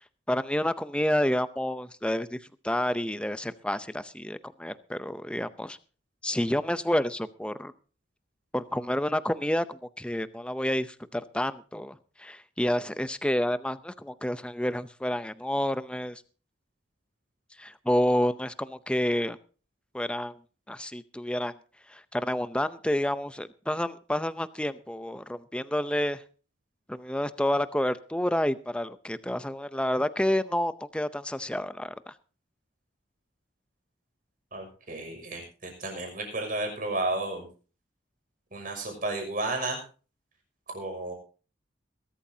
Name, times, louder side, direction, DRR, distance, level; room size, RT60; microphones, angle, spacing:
voice 1, 0.3-2.4 2.6-5.8 6.2-7.7 8.5-16.2 17.6-19.4 19.9-20.4 20.7-21.5 21.9-26.2 26.9-32.1, left 1 dB, 5° left, 13 dB, 0.6 m, -29 dB
voice 2, 34.5-37.5 38.5-39.8 40.7-41.1, right 2 dB, 45° right, 3 dB, 6.1 m, -32 dB
21.5 x 13.0 x 2.8 m, 0.37 s
head